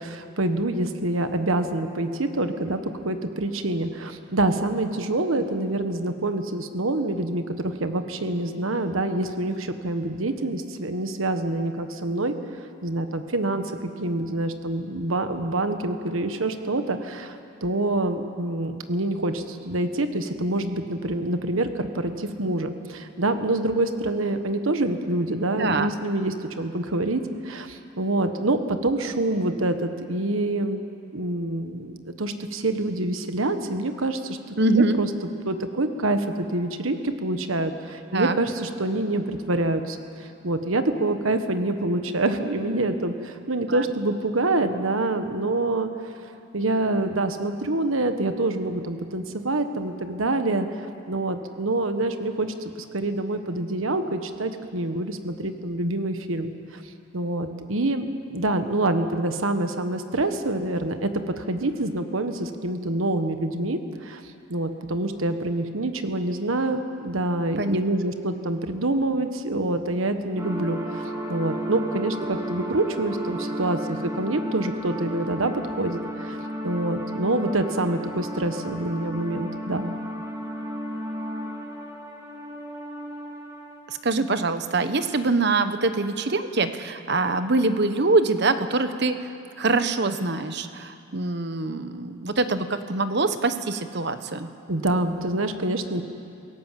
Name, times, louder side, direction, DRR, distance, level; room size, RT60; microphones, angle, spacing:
voice 1, 0.0-12.3 12.8-30.8 31.1-35.1 35.4-45.9 46.5-56.8 57.1-64.2 64.5-79.9 94.7-96.0, right 2 dB, 80° right, 8 dB, 1.4 m, -26 dB
voice 2, 25.6-25.9 34.6-35.0 38.1-38.4 43.7-43.8 67.6-67.8 83.9-89.3 89.6-94.5, right 3 dB, 55° right, 10 dB, 1.1 m, -24 dB
sound 1, 70.4-84.0, equal, 15° right, 2.4 m, -33 dB
27.0 x 18.0 x 7.6 m, 2.5 s
head